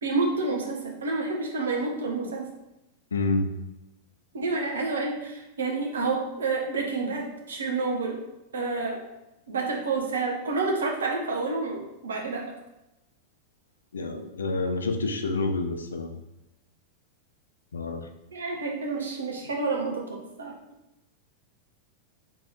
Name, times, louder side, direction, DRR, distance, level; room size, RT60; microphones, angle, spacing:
voice 1, 0.0-2.5 4.3-8.2 8.5-9.0 9.5-12.4 18.3-20.5, right 3 dB, 70° right, 1 dB, 0.9 m, -29 dB
voice 2, 3.1-3.5 13.9-16.2 17.7-18.1, left 3 dB, 70° left, 6 dB, 0.5 m, -28 dB
3.6 x 3.1 x 4.4 m, 0.95 s
figure-of-eight pair, 90°, 0 cm